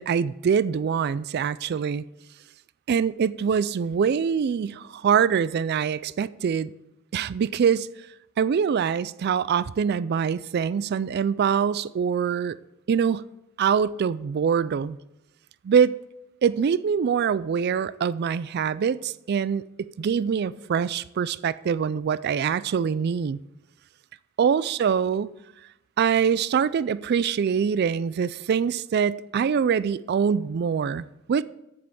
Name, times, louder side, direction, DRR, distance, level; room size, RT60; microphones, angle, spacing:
voice 1, 0.0-2.0 2.9-6.7 7.1-7.9 8.4-12.6 12.9-13.3 13.6-15.0 15.6-16.0 16.4-23.4 24.4-25.3 26.0-31.4, right 7 dB, 50° right, 0.3 m, -24 dB
7.7 x 7.6 x 6.9 m
head